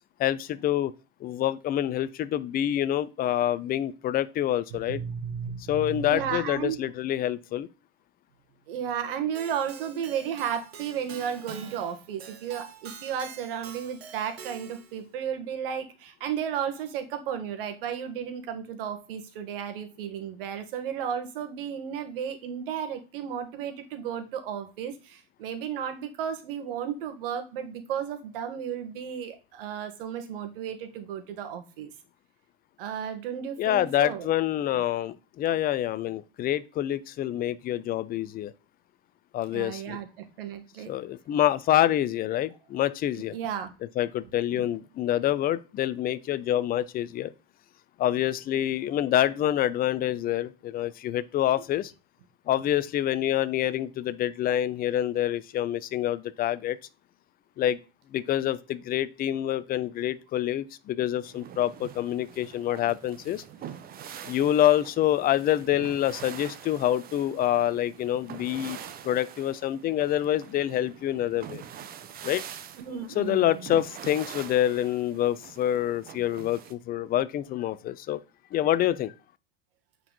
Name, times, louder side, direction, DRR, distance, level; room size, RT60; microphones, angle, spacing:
voice 1, 0.2-0.9 1.2-5.0 5.7-7.7 33.6-38.5 39.3-40.0 40.9-43.4 44.0-47.3 48.0-51.9 52.5-56.8 57.6-57.8 58.1-63.4 64.2-68.8 69.0-71.6 72.2-72.4 73.1-78.2 78.5-79.1, left 12 dB, 30° left, 0.7 m, -26 dB
voice 2, 4.9-6.9 8.7-31.9 32.8-34.3 39.5-40.9 43.3-43.7 72.8-73.6, right 8 dB, 65° right, 1.8 m, -33 dB
Keyboard (musical), 9.4-15.0, right 7 dB, 85° right, 1.5 m, -45 dB
sound 1, 61.2-76.7, right 9 dB, 30° right, 0.9 m, -44 dB
8.7 x 4.7 x 4.1 m
hypercardioid pair, 100°, 30 cm